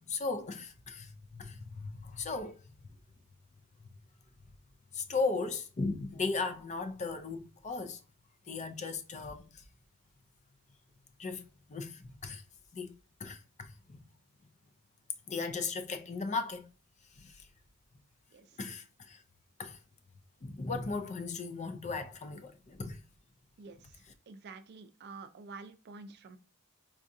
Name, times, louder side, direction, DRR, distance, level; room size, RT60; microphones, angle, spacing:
voice 1, 0.1-2.6 3.8-3.9 4.9-8.0 8.5-9.5 11.2-11.4 11.7-12.4 12.7-12.9 13.2-14.0 15.3-16.7 17.2-17.3 18.6-19.2 19.6-19.8 20.4-23.0, left 4 dB, 30° left, 0.5 m, -36 dB
voice 2, 24.3-26.4, right 4 dB, 50° right, 0.4 m, -48 dB
4.7 x 2.3 x 2.6 m
head